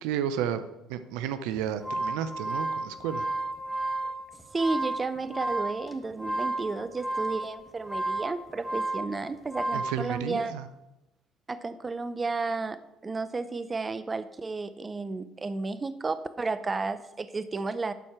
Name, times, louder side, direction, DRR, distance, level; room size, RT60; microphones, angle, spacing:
voice 1, 0.0-3.3 9.7-10.7, right 9 dB, 80° right, 11 dB, 0.5 m, -32 dB
sound 1, 1.6-10.0, right 2 dB, 5° right, 1.3 m, -32 dB
voice 2, 4.5-10.6 11.5-17.9, right 3 dB, 30° right, 13 dB, 0.6 m, -32 dB
12.0 x 4.4 x 4.9 m, 0.92 s
hypercardioid pair, 65°, 0 cm